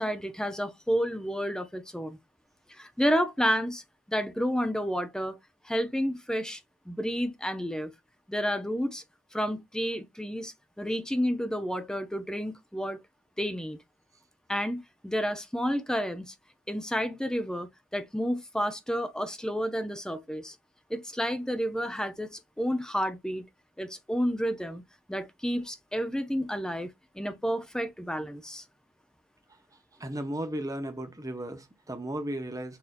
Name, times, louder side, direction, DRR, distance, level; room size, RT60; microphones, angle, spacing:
voice 1, 0.0-2.2 2.7-3.8 4.1-5.4 5.6-6.6 6.9-7.9 8.3-9.0 9.3-13.0 13.4-13.8 14.5-16.3 16.7-20.6 20.9-23.5 23.8-24.8 25.1-28.6, equal, 5° left, 0.5 m, -30 dB
voice 2, 30.0-32.8, right 1 dB, 15° right, 0.8 m, -35 dB
6.2 x 2.7 x 2.5 m
head